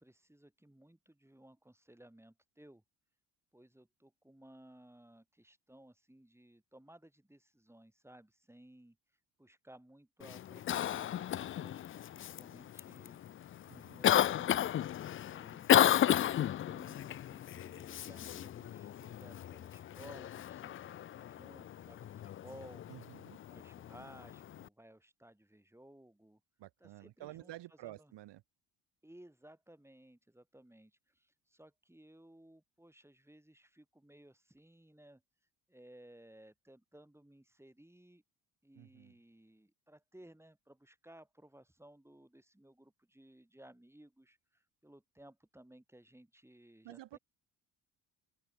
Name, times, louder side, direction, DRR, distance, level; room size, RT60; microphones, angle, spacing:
voice 1, 0.0-2.8 3.5-9.0 9.4-13.2 13.7-14.9 15.2-15.9 16.4-22.8 23.5-26.4 26.8-27.5 27.8-28.1 29.0-35.2 35.7-38.2 38.6-47.2, right 1 dB, 5° right, 7.5 m, -59 dB
Cough, 10.2-24.7, left 11 dB, 30° left, 0.4 m, -34 dB
voice 2, 13.7-14.1 22.9-23.4 26.6-28.4 38.7-39.2 46.8-47.2, right 15 dB, 70° right, 3.2 m, -51 dB
open air
supercardioid pair, 70°, 44 cm